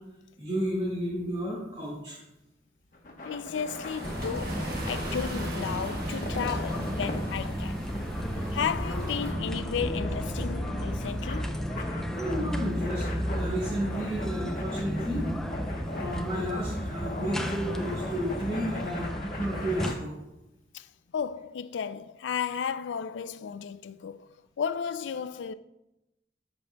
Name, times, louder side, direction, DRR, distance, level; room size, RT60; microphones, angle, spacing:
voice 1, 0.4-2.2 12.1-13.0 13.3-15.2 15.8-20.2, equal, 30° right, 1.8 m, -32 dB
sound 1, 2.9-19.9, left 1 dB, 45° left, 1.0 m, -40 dB
voice 2, 3.2-7.8 8.5-11.6 20.7-20.9 21.1-24.3 24.6-25.5, left 7 dB, 90° left, 0.4 m, -34 dB
sound 2, 3.7-9.3, right 1 dB, 55° right, 1.2 m, -41 dB
sound 3, 4.0-19.9, equal, 5° left, 0.4 m, -33 dB
10.5 x 7.0 x 2.2 m
head